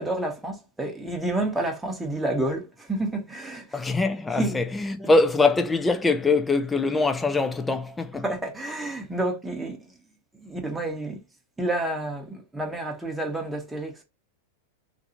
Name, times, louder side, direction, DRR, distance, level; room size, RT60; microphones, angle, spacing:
voice 1, 0.0-3.8 4.3-4.6 5.0-5.1 8.2-10.0 10.4-11.2 11.6-14.0, right 1 dB, 5° right, 0.9 m, -29 dB
voice 2, 3.7-8.2, left 3 dB, 10° left, 0.4 m, -23 dB
2.5 x 2.3 x 2.8 m
hypercardioid pair, 110°, 0 cm